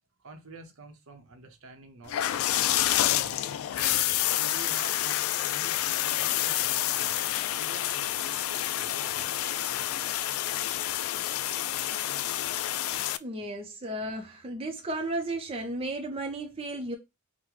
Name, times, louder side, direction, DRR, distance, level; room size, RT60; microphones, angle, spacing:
voice 1, 0.2-3.6 4.3-9.3 9.6-10.3, right 3 dB, 70° right, 0.8 m, -49 dB
sound 1, 2.1-13.2, left 12 dB, 75° left, 0.3 m, -28 dB
voice 2, 13.2-17.0, right 1 dB, 25° right, 0.5 m, -34 dB
3.6 x 2.1 x 3.0 m
head